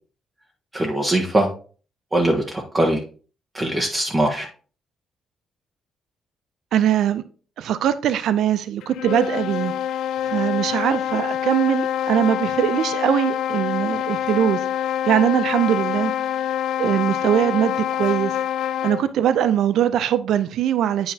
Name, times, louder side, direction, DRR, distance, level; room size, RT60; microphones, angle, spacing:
voice 1, 0.7-1.5 2.1-3.0 3.5-4.5, right 1 dB, 25° right, 1.2 m, -21 dB
voice 2, 6.7-7.2 7.6-9.7 10.3-14.6 15.1-16.1 16.8-18.3 18.8-21.1, right 10 dB, 75° right, 0.4 m, -21 dB
sound 1, 8.8-19.1, left 10 dB, 80° left, 0.3 m, -26 dB
8.6 x 5.5 x 2.8 m
cardioid pair, 90°, 0 cm